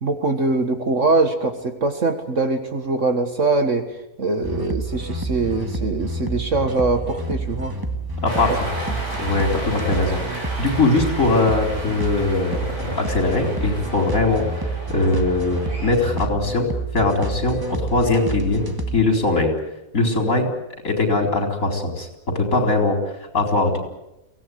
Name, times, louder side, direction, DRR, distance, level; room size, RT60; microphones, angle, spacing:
voice 1, 0.0-3.9 4.2-7.7 8.5-8.6 8.9-9.0, right 3 dB, 55° right, 7 dB, 1.9 m, -22 dB
sound 1, 4.4-19.0, right 2 dB, 15° right, 1.5 m, -29 dB
voice 2, 8.2-8.5 9.2-14.6 14.9-16.7 16.9-18.6 18.9-19.5 19.9-20.5 20.8-23.8, left 2 dB, 60° left, 4 dB, 4.7 m, -21 dB
Cheering, 8.3-15.9, right 1 dB, 75° right, 6.7 m, -33 dB
23.5 x 17.5 x 9.5 m, 0.91 s
omnidirectional pair, 1.6 m